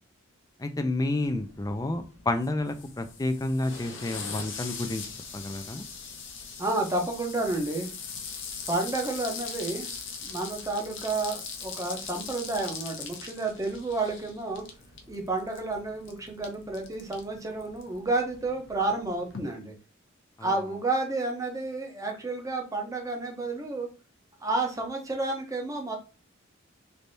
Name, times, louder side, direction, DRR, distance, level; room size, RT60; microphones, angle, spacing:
voice 1, 0.6-5.0 5.3-5.8 20.4-20.5, left 2 dB, 15° left, 8 dB, 0.4 m, -30 dB
sound 1, 1.2-19.4, left 5 dB, 60° left, 0.7 m, -41 dB
voice 2, 6.6-7.9 8.7-9.9 10.2-14.6 15.1-19.7 20.4-23.9 24.4-26.0, right 2 dB, 15° right, 2 dB, 0.7 m, -30 dB
3.4 x 3.2 x 2.7 m, 0.32 s
head